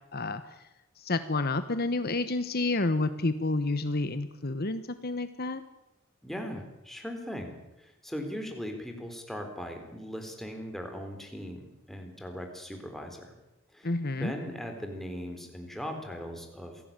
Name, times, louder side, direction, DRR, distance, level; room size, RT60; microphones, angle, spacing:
voice 1, 1.0-5.6 13.8-14.3, left 2 dB, 50° left, 11 dB, 1.1 m, -29 dB
voice 2, 6.2-13.3 13.7-13.9 14.2-16.8, equal, ahead, 3 dB, 4.2 m, -39 dB
26.5 x 17.5 x 9.0 m, 0.97 s
head